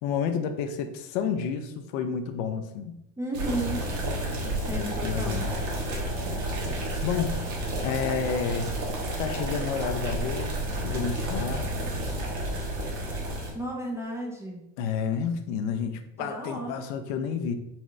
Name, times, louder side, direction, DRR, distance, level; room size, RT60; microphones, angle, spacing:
voice 1, 0.0-3.0 4.4-5.5 7.0-7.5 7.8-8.7 9.2-11.7 14.8-17.6, left 6 dB, 75° left, 7 dB, 0.6 m, -30 dB
voice 2, 3.2-3.8 4.7-5.5 13.5-14.6 16.2-16.8, right 1 dB, 5° right, -2 dB, 0.4 m, -33 dB
sound 1, 3.3-13.5, right 1 dB, 50° right, 1.2 m, -31 dB
4.3 x 2.4 x 3.0 m, 0.87 s
supercardioid pair, 125°, 39 cm